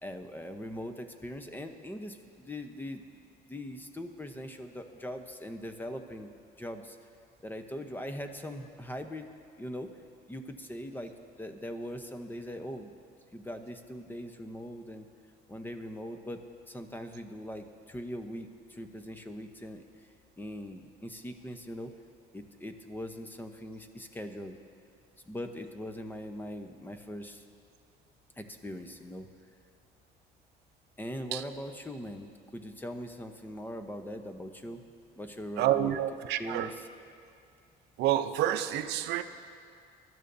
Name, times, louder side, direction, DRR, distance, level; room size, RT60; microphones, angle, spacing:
voice 1, 0.0-3.0 3.5-6.3 6.6-7.0 7.4-9.3 9.6-9.9 10.3-11.1 11.4-12.9 13.3-15.1 15.5-16.4 16.7-20.1 20.4-21.9 22.3-24.6 25.3-27.4 28.4-29.3 31.0-34.8 35.2-36.0 36.4-36.7, equal, 10° left, 6 dB, 0.8 m, -41 dB
voice 2, 35.6-36.7 38.0-39.2, right 12 dB, 85° right, 10 dB, 0.5 m, -28 dB
20.5 x 12.5 x 2.7 m, 2.4 s
cardioid pair, 110°, 17 cm